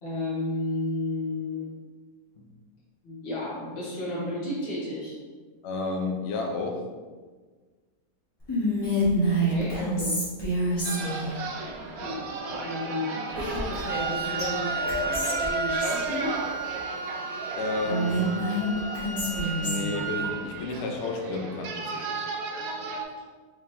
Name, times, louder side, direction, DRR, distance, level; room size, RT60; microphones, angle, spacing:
voice 1, 0.0-1.6 3.0-5.2 9.5-10.1 12.0-16.4, left 2 dB, 35° left, -9 dB, 1.6 m, -32 dB
voice 2, 5.6-6.9 9.4-9.6 10.0-10.1 17.6-18.4 19.5-22.3, left 3 dB, 60° left, 2 dB, 0.7 m, -32 dB
Whispering, 8.5-11.3 13.4-14.1 14.4-14.5 14.9-16.0 17.8-20.0, right 1 dB, 20° left, 0.9 m, -27 dB
sound 1, 10.8-23.0, right 3 dB, 70° right, 0.9 m, -35 dB
Wind instrument woodwind instrument, 13.9-20.5, right 5 dB, 90° right, 1.3 m, -33 dB
4.7 x 3.7 x 2.6 m, 1.4 s
omnidirectional pair, 1.8 m